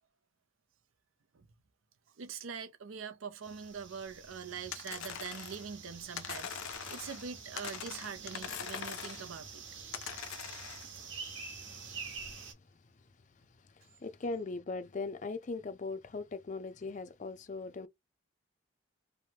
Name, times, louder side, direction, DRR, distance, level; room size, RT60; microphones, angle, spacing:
voice 1, 2.2-9.6 10.1-10.2, right 6 dB, 80° right, 0.6 m, -43 dB
sound 1, 3.4-12.5, right 5 dB, 65° right, 1.1 m, -47 dB
sound 2, 4.7-5.7 6.2-7.3 7.6-9.3 9.9-10.9, left 8 dB, 90° left, 0.6 m, -42 dB
voice 2, 11.7-17.9, left 3 dB, 35° left, 0.4 m, -41 dB
3.2 x 2.1 x 2.8 m
head